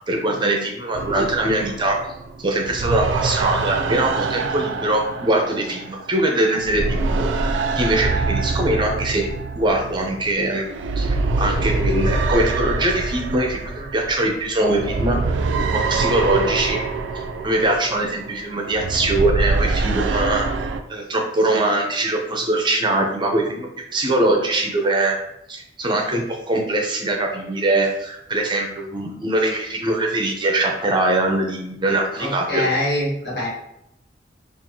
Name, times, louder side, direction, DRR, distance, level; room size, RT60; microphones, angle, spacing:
voice 1, 0.1-2.0 2.4-9.3 9.5-10.6 11.0-15.4 15.7-16.9 17.4-20.5 20.9-25.2 25.5-32.7, right 1 dB, 25° right, 1 dB, 0.5 m, -22 dB
sound 1, 0.9-6.3 6.6-20.8, right 3 dB, 85° right, 0.4 m, -25 dB
voice 2, 32.2-33.5, left 1 dB, 65° left, -5 dB, 1.5 m, -24 dB
4.4 x 2.5 x 2.7 m, 0.83 s
head